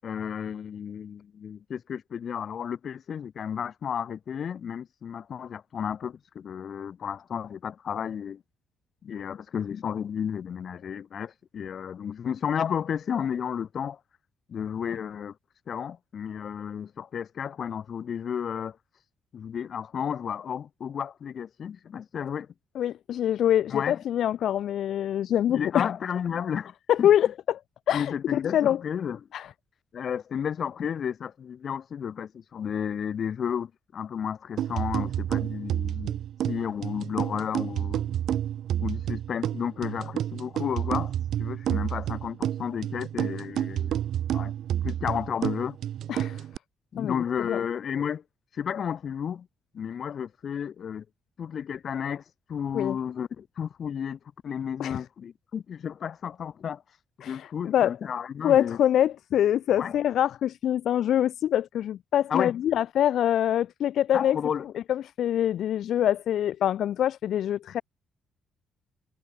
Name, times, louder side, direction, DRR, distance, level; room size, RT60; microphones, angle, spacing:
voice 1, 0.0-8.4 9.0-14.0 14.5-15.3 15.7-18.8 19.3-22.5 23.7-24.0 25.5-27.1 27.9-29.2 29.9-36.2 36.5-38.2 38.8-41.1 41.4-44.0 44.3-44.5 44.8-45.8 46.9-48.2 48.5-49.5 49.7-51.0 51.4-52.2 52.5-56.8 57.3-58.8 59.8-59.9 62.3-62.5 64.1-64.6, left 8 dB, 55° left, 6.3 m, -32 dB
voice 2, 22.7-25.9 26.9-27.6 27.9-28.8 29.3-29.5 46.1-46.4 47.0-47.6 52.7-53.0 54.8-55.0 57.2-58.0 58.4-64.4 64.7-67.8, left 11 dB, 70° left, 2.2 m, -25 dB
sound 1, 34.6-46.6, right 11 dB, 70° right, 6.1 m, -30 dB
cardioid pair, 90°, 0 cm